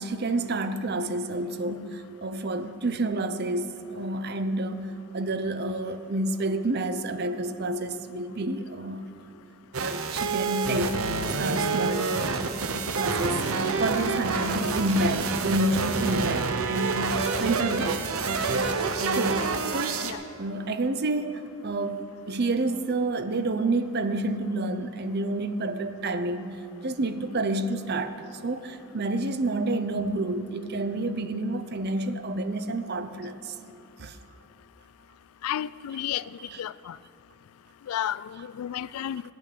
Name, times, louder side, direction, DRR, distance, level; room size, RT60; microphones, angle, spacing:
voice 1, 0.0-9.0 9.8-11.0 11.2-12.3 12.9-13.4 13.8-18.1 18.5-20.1 20.4-33.5 34.0-34.2 36.4-36.6, right 2 dB, 50° right, 0.6 m, -29 dB
sound 1, 9.7-20.1, right 4 dB, 80° right, 0.9 m, -28 dB
voice 2, 35.4-36.2 36.6-37.0 37.9-39.2, left 11 dB, 85° left, 0.3 m, -32 dB
15.0 x 6.2 x 9.9 m
head